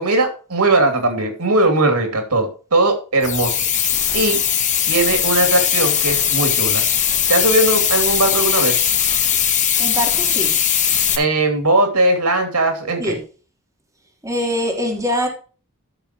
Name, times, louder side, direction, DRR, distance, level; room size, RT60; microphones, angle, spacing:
voice 1, 0.0-3.6 4.1-4.4 4.9-6.8 7.3-8.8 11.2-13.2, right 2 dB, 85° right, 2.7 m, -18 dB
sound 1, 3.2-11.2, left 8 dB, 35° left, 1.6 m, -19 dB
voice 2, 9.8-10.6 13.0-13.2 14.2-15.3, equal, 15° right, 3.3 m, -23 dB
14.5 x 6.8 x 3.0 m
head